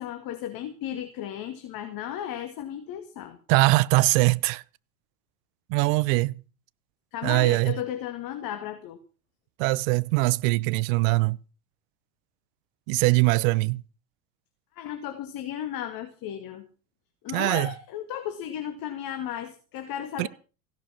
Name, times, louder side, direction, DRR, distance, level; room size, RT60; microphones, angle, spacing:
voice 1, 0.0-3.4 7.1-9.0 14.8-16.7 17.2-20.3, left 10 dB, 45° left, 2.4 m, -35 dB
voice 2, 3.5-4.6 5.7-6.4 7.2-7.8 9.6-11.4 12.9-13.8 17.3-17.7 20.2-20.3, right 23 dB, 55° right, 0.8 m, -22 dB
16.5 x 12.0 x 6.0 m
hypercardioid pair, 85°, 47 cm